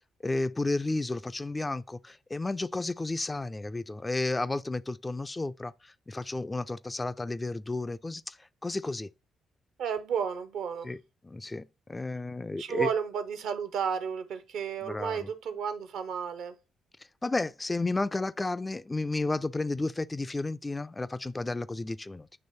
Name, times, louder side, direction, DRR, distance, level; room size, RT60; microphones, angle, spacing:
voice 1, 0.2-8.4 8.6-9.1 10.8-11.0 11.2-12.9 14.8-15.3 17.2-22.3, left 2 dB, 20° left, 0.3 m, -32 dB
voice 2, 9.8-10.9 12.6-16.5, right 7 dB, 65° right, 0.6 m, -32 dB
8.8 x 3.1 x 4.1 m
figure-of-eight pair, 40°, 0 cm